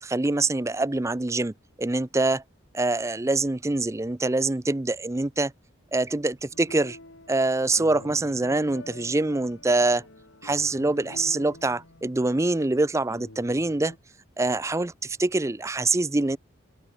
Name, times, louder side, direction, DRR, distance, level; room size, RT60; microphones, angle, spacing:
voice 1, 0.0-2.4 2.7-5.5 5.9-7.0 7.3-10.0 10.4-13.9 14.4-16.4, right 2 dB, 15° right, 0.5 m, -25 dB
sound 1, 6.5-14.0, left 1 dB, 65° left, 4.2 m, -47 dB
open air
head